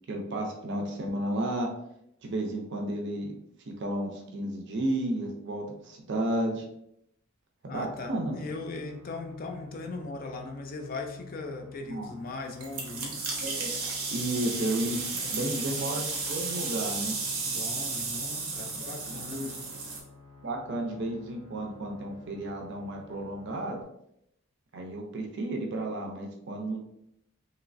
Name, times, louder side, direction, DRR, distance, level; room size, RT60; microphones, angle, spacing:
voice 1, 0.1-1.7 2.2-3.3 3.7-6.6 7.6-8.3 11.9-12.1 13.4-13.7 14.1-15.0 15.3-17.2 18.8-19.5 20.4-23.8 24.7-26.9, right 1 dB, 55° right, 1 dB, 0.5 m, -32 dB
sound 1, 7.7-23.8, left 4 dB, 90° left, 0.6 m, -49 dB
voice 2, 7.7-13.2 15.1-15.6 17.3-19.6, left 3 dB, 40° left, 4 dB, 0.4 m, -39 dB
sound 2, 12.6-20.0, right 4 dB, 85° right, 0.8 m, -33 dB
3.1 x 2.9 x 2.5 m, 0.76 s
head